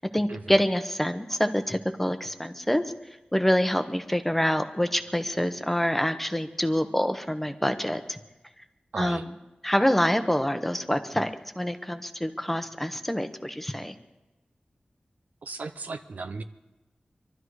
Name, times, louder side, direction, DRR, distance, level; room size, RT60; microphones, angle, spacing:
voice 1, 0.1-2.8 3.3-8.2 9.0-9.2 9.6-11.3 11.6-13.9, equal, 5° left, 8 dB, 0.9 m, -26 dB
voice 2, 8.9-9.2 15.4-16.4, right 3 dB, 70° right, 8 dB, 0.7 m, -36 dB
23.5 x 12.5 x 4.8 m, 1.1 s
wide cardioid pair, 100°, 3 cm